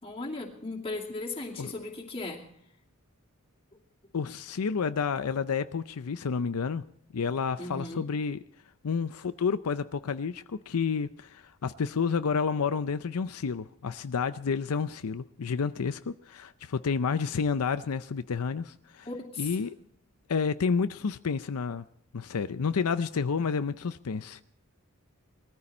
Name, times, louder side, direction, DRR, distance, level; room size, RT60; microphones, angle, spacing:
voice 1, 0.0-2.4 7.6-8.1 19.1-19.6, left 2 dB, 25° left, 2.6 m, -37 dB
voice 2, 4.1-6.8 7.1-8.4 8.8-19.1 19.4-19.7 20.3-21.9 22.1-24.4, left 5 dB, 85° left, 0.5 m, -30 dB
20.0 x 14.0 x 4.3 m
head